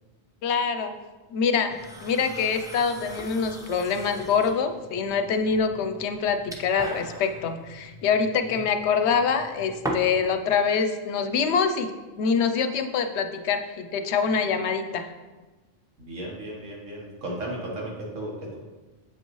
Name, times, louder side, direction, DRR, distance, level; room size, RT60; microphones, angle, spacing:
voice 1, 0.4-0.9 1.3-11.9 12.2-15.1, left 6 dB, 70° left, 7 dB, 0.8 m, -25 dB
sound 1, 1.7-10.3, right 1 dB, 5° right, 0.4 m, -39 dB
voice 2, 16.0-18.6, right 1 dB, 85° right, -2 dB, 1.6 m, -35 dB
7.7 x 5.3 x 3.0 m, 1.2 s
omnidirectional pair, 1.2 m